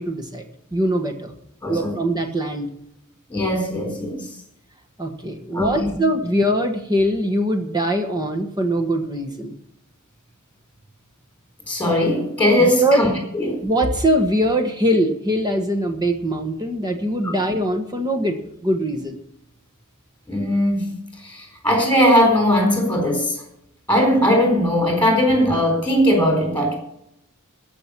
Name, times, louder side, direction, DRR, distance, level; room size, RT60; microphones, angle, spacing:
voice 1, 0.0-1.3 1.7-2.7 5.0-9.5 12.6-13.1 13.6-19.2, right 1 dB, 20° right, 5 dB, 1.4 m, -22 dB
voice 2, 1.6-1.9 3.3-4.3 5.5-6.0 11.7-13.1 13.3-13.6 17.2-17.3 20.3-23.4 23.9-26.8, equal, 10° left, 2 dB, 4.1 m, -19 dB
14.0 x 6.0 x 9.8 m, 0.78 s
head